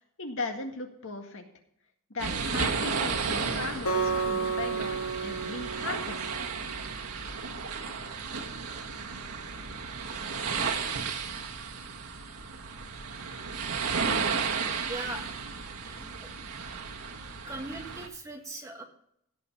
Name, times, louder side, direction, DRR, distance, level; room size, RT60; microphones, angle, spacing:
voice 1, 0.2-1.4 2.1-6.3, left 3 dB, 60° left, 4 dB, 1.9 m, -37 dB
sound 1, 2.2-18.1, right 5 dB, 85° right, 1.4 m, -33 dB
Acoustic guitar, 3.9-7.1, right 4 dB, 80° left, 2.2 m, -32 dB
voice 2, 14.9-15.3 15.8-16.3 17.5-18.8, right 2 dB, 15° right, 2 dB, 1.8 m, -40 dB
16.5 x 5.9 x 5.6 m, 0.69 s
head